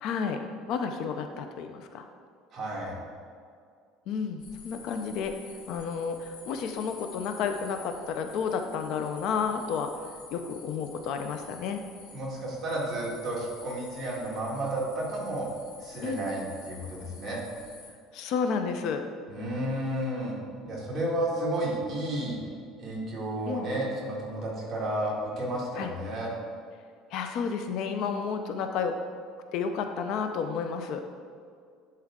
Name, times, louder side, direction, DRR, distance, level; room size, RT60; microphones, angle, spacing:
voice 1, 0.0-0.4 0.7-2.0 4.1-5.4 5.7-9.9 10.3-11.8 16.0-16.2 18.1-19.0 23.5-23.7 25.8-25.9 27.1-29.0 29.5-31.0, left 6 dB, 55° left, 6 dB, 0.4 m, -31 dB
voice 2, 2.5-2.9 12.1-15.5 15.8-17.4 19.3-20.4 20.6-22.4 22.8-26.3, right 1 dB, 25° right, -5 dB, 1.9 m, -32 dB
sound 1, 4.4-17.9, left 4 dB, 85° left, 1.3 m, -49 dB
10.5 x 4.4 x 3.7 m, 2.2 s
cardioid pair, 160°, 0 cm